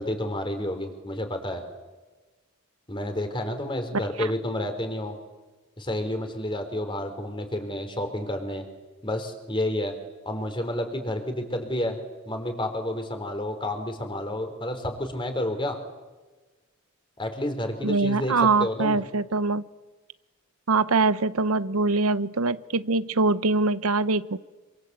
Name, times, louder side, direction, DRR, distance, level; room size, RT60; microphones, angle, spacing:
voice 1, 0.0-1.6 2.9-5.2 5.8-8.6 9.0-9.9 10.3-12.0 12.3-15.8 17.2-19.0, left 1 dB, 25° left, 6 dB, 4.0 m, -30 dB
voice 2, 17.8-19.6 20.7-24.4, right 3 dB, 90° right, 15 dB, 0.9 m, -23 dB
27.0 x 25.0 x 8.2 m, 1.3 s
head